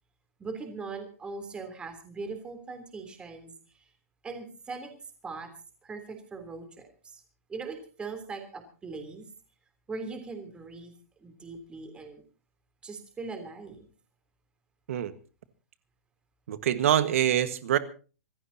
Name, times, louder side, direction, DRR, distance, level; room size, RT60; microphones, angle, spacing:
voice 1, 0.4-3.8 4.2-5.0 5.2-5.5 5.8-7.2 7.5-9.3 9.9-10.9 11.2-12.2 12.8-13.9, right 4 dB, 10° right, 6 dB, 3.2 m, -40 dB
voice 2, 16.5-17.8, right 11 dB, 60° right, 12 dB, 1.5 m, -25 dB
26.5 x 15.0 x 2.8 m, 0.36 s
hypercardioid pair, 150°, 8 cm